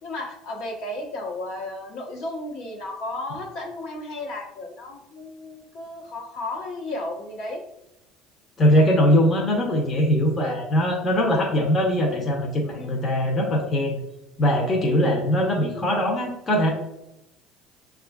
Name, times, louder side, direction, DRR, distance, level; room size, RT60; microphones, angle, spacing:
voice 1, 0.0-7.6 10.4-10.6 12.8-12.9 15.0-15.1, left 2 dB, 70° left, 0 dB, 1.0 m, -34 dB
voice 2, 8.6-14.0 14.4-16.7, equal, 30° left, 0 dB, 0.8 m, -21 dB
6.1 x 2.4 x 2.3 m, 0.88 s
supercardioid pair, 115°, 0 cm